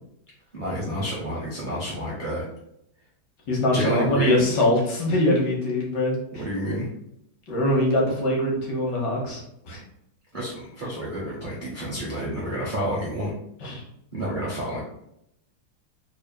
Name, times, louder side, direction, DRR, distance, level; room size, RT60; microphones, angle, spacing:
voice 1, 0.5-2.5 3.7-4.5 6.3-6.9 10.3-13.3 14.1-14.8, right 1 dB, 50° right, -5 dB, 0.6 m, -29 dB
voice 2, 3.5-6.2 7.5-9.8 13.6-13.8, left 1 dB, 65° left, -2 dB, 1.6 m, -23 dB
3.9 x 3.4 x 2.2 m, 0.78 s
omnidirectional pair, 2.1 m